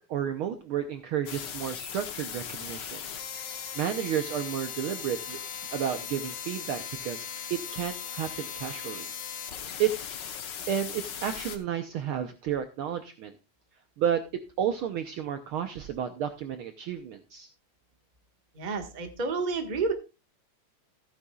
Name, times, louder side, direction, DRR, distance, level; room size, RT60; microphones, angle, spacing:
voice 1, 0.1-3.0 3.5-5.4 5.7-9.1 9.8-9.9 10.7-13.3 14.0-14.2 14.6-17.5, right 9 dB, 85° right, 8 dB, 1.1 m, -31 dB
sound 1, 1.3-11.6, left 8 dB, 65° left, 1.1 m, -38 dB
voice 2, 18.5-19.9, right 4 dB, 30° right, 5 dB, 0.8 m, -30 dB
15.0 x 9.6 x 2.3 m, 0.29 s
omnidirectional pair, 3.3 m